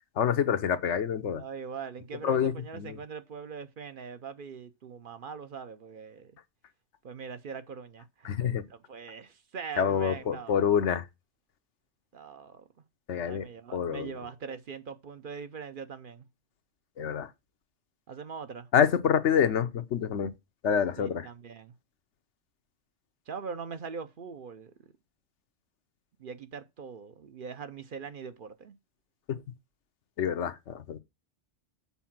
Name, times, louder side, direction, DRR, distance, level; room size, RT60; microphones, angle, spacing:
voice 1, 0.2-1.4 2.2-3.0 8.2-8.6 9.8-11.0 13.1-14.1 17.0-17.3 18.7-20.3 20.6-21.3 29.3-29.4 30.2-31.0, left 8 dB, 85° left, 1.1 m, -27 dB
voice 2, 1.3-6.3 7.0-10.7 12.1-12.7 13.2-16.2 18.1-18.7 21.0-21.7 23.3-24.7 26.2-28.8, right 6 dB, 55° right, 0.8 m, -42 dB
7.1 x 4.7 x 5.8 m
omnidirectional pair, 1.2 m